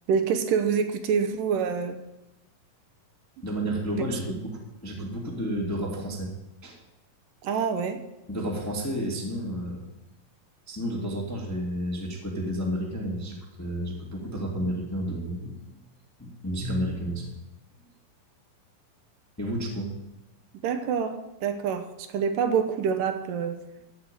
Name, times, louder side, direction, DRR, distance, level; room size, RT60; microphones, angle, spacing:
voice 1, 0.1-2.0 7.4-8.0 20.6-23.6, right 6 dB, 75° right, 7 dB, 2.3 m, -26 dB
voice 2, 3.4-6.3 6.6-6.8 8.3-9.8 10.7-15.6 16.2-17.2 19.4-19.9, equal, 10° left, -2 dB, 1.0 m, -31 dB
14.5 x 4.9 x 9.0 m, 0.95 s
omnidirectional pair, 4.1 m